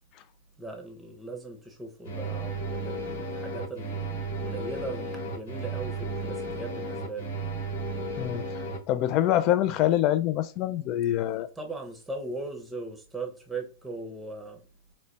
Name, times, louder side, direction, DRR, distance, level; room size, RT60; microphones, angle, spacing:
voice 1, 0.6-7.3 11.6-14.6, right 2 dB, 5° right, 0.7 m, -39 dB
sound 1, 2.0-8.8, right 2 dB, 80° left, 1.2 m, -34 dB
voice 2, 8.9-11.5, left 12 dB, 40° left, 0.3 m, -25 dB
3.9 x 2.2 x 3.1 m
hypercardioid pair, 130°, 0 cm